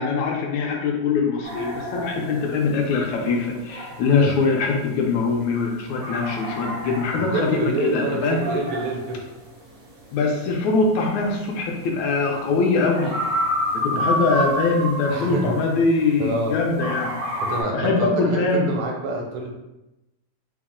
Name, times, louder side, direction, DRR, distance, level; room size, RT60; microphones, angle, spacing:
voice 1, 0.0-8.4 10.1-13.2 13.7-17.2 17.7-18.7, left 4 dB, 80° left, 1 dB, 1.9 m, -22 dB
sound 1, 1.4-16.4 16.8-17.6, equal, 70° right, 0.8 m, -30 dB
voice 2, 7.1-9.2 13.9-14.1 15.1-15.5 16.2-16.6 17.4-19.5, right 3 dB, 85° right, 1 dB, 2.0 m, -27 dB
4.7 x 2.0 x 3.6 m, 0.96 s
omnidirectional pair, 3.4 m